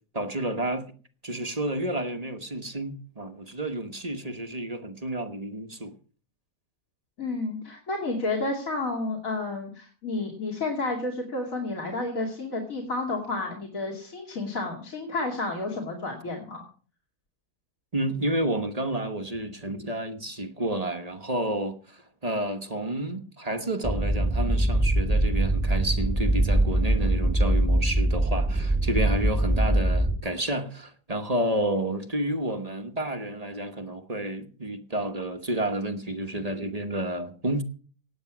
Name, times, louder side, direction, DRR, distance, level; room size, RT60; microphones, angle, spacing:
voice 1, 0.1-0.9 1.2-5.9 17.9-37.6, right 1 dB, 25° right, 1.2 m, -30 dB
voice 2, 7.2-16.6, left 2 dB, 55° left, 2.9 m, -31 dB
sound 1, 23.8-30.2, right 1 dB, 5° right, 1.4 m, -23 dB
18.0 x 8.8 x 6.0 m
omnidirectional pair, 1.7 m